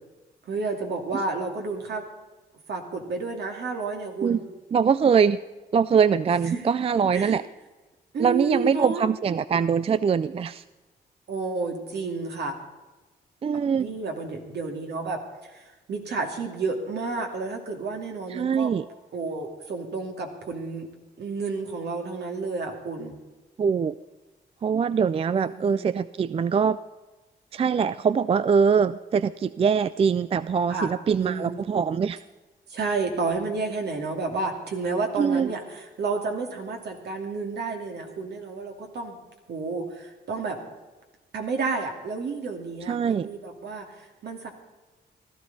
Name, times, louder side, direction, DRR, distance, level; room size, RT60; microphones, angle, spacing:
voice 1, 0.5-2.0 2.7-4.4 6.5-6.6 7.1-7.4 8.1-9.0 11.3-12.5 13.8-15.2 15.5-18.7 19.1-20.9 21.2-23.1 25.3-25.8 30.7-30.9 31.2-31.6 32.7-39.2 39.5-40.6 41.3-44.5, right 4 dB, 70° right, 2 dB, 2.5 m, -31 dB
voice 2, 4.7-5.4 5.7-7.4 8.2-10.6 13.4-13.9 18.3-18.9 23.6-24.0 24.6-26.8 27.5-32.2 35.2-35.5 42.9-43.3, right 6 dB, 35° right, 16 dB, 0.3 m, -23 dB
16.0 x 13.0 x 4.1 m, 1.2 s
cardioid pair, 90°, 18 cm